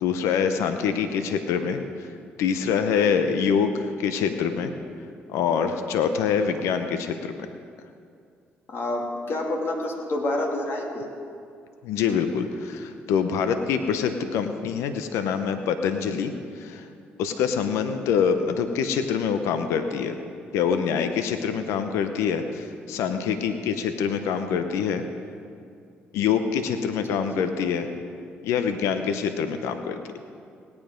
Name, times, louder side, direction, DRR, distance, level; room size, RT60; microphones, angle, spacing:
voice 1, 0.0-2.1 2.4-4.7 5.3-7.5 11.8-16.9 17.2-20.2 20.5-25.0 26.1-27.9 28.4-30.0, left 7 dB, 75° left, 8 dB, 0.8 m, -25 dB
voice 2, 8.7-11.1 27.1-27.2, left 1 dB, 55° left, 0 dB, 2.6 m, -28 dB
17.5 x 9.6 x 5.2 m, 2.3 s
hypercardioid pair, 55°, 5 cm